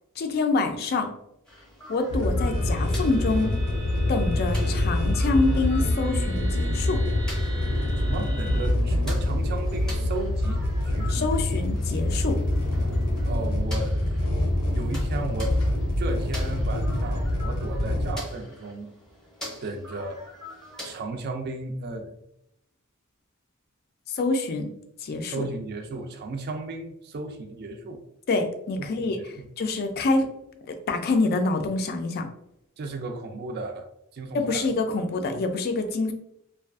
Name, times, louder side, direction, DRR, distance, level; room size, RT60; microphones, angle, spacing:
voice 1, 0.2-1.1 1.9-3.5 4.1-7.0 11.1-12.4 24.1-24.7 25.0-25.4 28.3-29.2 29.6-30.3 30.7-32.3 34.3-36.1, left 3 dB, 50° left, 6 dB, 0.3 m, -26 dB
sound 1, 1.5-21.0, left 1 dB, 5° left, 0.7 m, -45 dB
sound 2, 2.1-18.1, left 1 dB, 90° left, 0.6 m, -25 dB
sound 3, 2.4-8.7, right 1 dB, 80° right, 0.7 m, -43 dB
voice 2, 8.0-11.3 13.2-14.3 14.7-18.9 19.6-20.2 20.8-22.1 25.2-28.0 28.8-29.5 32.8-33.9 34.1-34.6, right 3 dB, 50° right, 5 dB, 0.4 m, -35 dB
2.4 x 2.3 x 2.3 m, 0.78 s
head